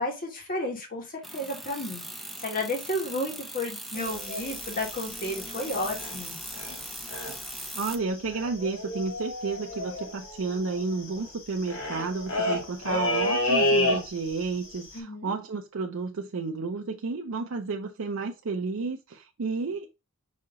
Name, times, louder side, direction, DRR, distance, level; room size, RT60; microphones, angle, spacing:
voice 1, 0.0-6.4 14.9-15.3, left 1 dB, 45° left, 1.4 m, -32 dB
sound 1, 1.2-8.0, right 1 dB, ahead, 0.5 m, -39 dB
sound 2, 3.9-6.3 6.5-6.8 7.1-7.6 7.8-7.9 8.1-14.4 14.7-15.0, left 1 dB, 70° left, 1.7 m, -30 dB
voice 2, 7.7-20.0, right 4 dB, 70° right, 0.5 m, -32 dB
5.2 x 2.9 x 3.6 m
head